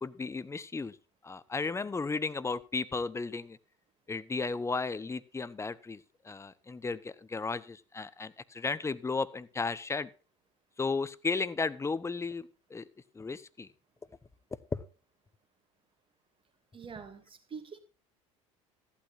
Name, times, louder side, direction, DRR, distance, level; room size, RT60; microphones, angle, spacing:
voice 1, 0.0-1.0 1.2-3.6 4.1-10.1 10.8-12.8 13.1-13.7 14.7-14.8, left 4 dB, 15° left, 16 dB, 1.0 m, -34 dB
voice 2, 16.7-17.8, right 6 dB, 30° right, 7 dB, 2.8 m, -45 dB
14.0 x 12.0 x 2.7 m, 0.33 s
hypercardioid pair, 70°, 17 cm